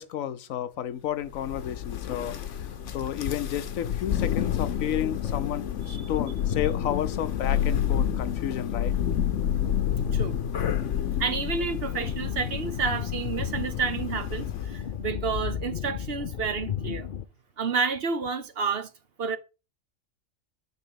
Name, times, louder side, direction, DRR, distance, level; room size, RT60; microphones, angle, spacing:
voice 1, 0.0-2.4 2.9-8.9, left 10 dB, 90° left, 1.2 m, -31 dB
Thunder, 1.3-15.0, left 9 dB, 70° left, 1.1 m, -29 dB
voice 2, 11.2-17.1 17.6-18.9 19.2-19.4, right 5 dB, 55° right, 0.9 m, -30 dB
sound 1, 12.0-17.2, left 9 dB, 50° left, 0.7 m, -34 dB
9.4 x 3.6 x 6.9 m
omnidirectional pair, 1.4 m